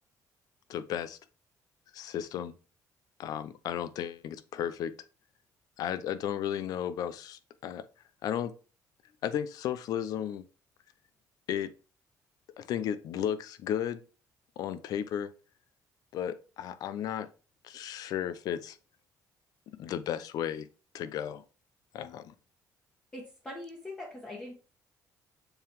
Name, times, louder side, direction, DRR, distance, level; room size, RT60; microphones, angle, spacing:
voice 1, 0.7-1.2 1.9-2.5 3.2-4.9 5.8-7.8 8.2-8.5 9.2-10.4 11.5-11.7 12.6-14.0 14.6-15.3 16.1-17.3 17.6-18.8 19.8-20.7 20.9-21.4 21.9-22.3, left 10 dB, 65° left, 0.6 m, -34 dB
voice 2, 23.1-24.5, left 1 dB, 15° left, 1.4 m, -42 dB
7.0 x 3.8 x 3.5 m
cardioid pair, 140°, 7 cm